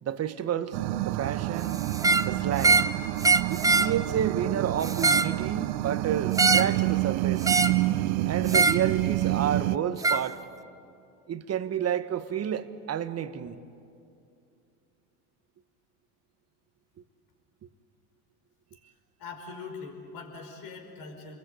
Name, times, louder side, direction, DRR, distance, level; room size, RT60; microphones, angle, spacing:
voice 1, 0.0-1.7 2.2-2.9 3.5-7.5 8.2-10.4 11.3-13.6, right 9 dB, 35° right, 1.4 m, -30 dB
sound 1, 0.7-9.8, right 17 dB, 65° right, 0.8 m, -28 dB
sound 2, 1.9-2.3 2.6-2.9 3.2-3.9 4.8-5.3 6.4-6.8 7.4-7.8 8.5-8.8 10.0-10.2, right 3 dB, 10° right, 0.6 m, -22 dB
voice 2, 19.2-21.4, left 4 dB, 50° left, 5.0 m, -42 dB
29.5 x 21.5 x 8.3 m
hypercardioid pair, 90°, 45 cm